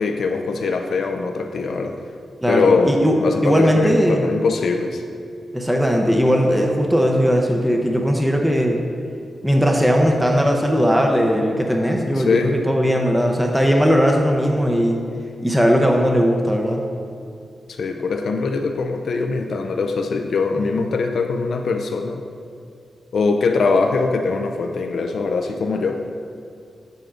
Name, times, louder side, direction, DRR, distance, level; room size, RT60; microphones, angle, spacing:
voice 1, 0.0-1.9 2.5-2.9 3.2-5.0 12.2-12.6 17.7-22.2 23.1-26.0, left 4 dB, 75° left, 4 dB, 0.4 m, -22 dB
voice 2, 2.4-3.2 3.4-4.3 5.5-8.8 9.4-15.0 15.4-16.8, equal, 5° right, 1 dB, 0.6 m, -18 dB
7.6 x 6.9 x 2.5 m, 2.3 s
cardioid pair, 90°, 0 cm